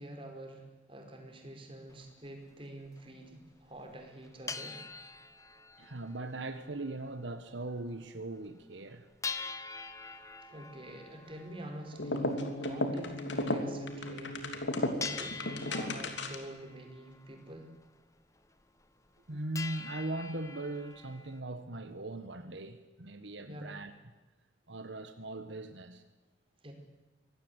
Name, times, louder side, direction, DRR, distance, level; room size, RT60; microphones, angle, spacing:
voice 1, 0.0-4.8 10.4-14.5 14.8-17.7 23.5-23.7 26.6-26.7, right 1 dB, 30° right, 3 dB, 4.9 m, -47 dB
sound 1, 1.9-2.0 2.6-2.7 2.9-3.0 3.7-3.8 4.1-7.2 7.5-7.6 8.0-8.1 8.5-8.6 9.2-13.8 14.4-14.6 15.0-18.0 18.4-18.5 18.8-19.3 19.6-21.4, left 4 dB, 15° left, 1.2 m, -45 dB
voice 2, 5.8-9.1 19.3-23.9 24.7-26.0, right 2 dB, 80° right, 9 dB, 1.6 m, -39 dB
sound 2, 11.9-16.6, left 1 dB, 80° left, 3.1 m, -34 dB
25.0 x 19.0 x 8.2 m, 1.2 s
head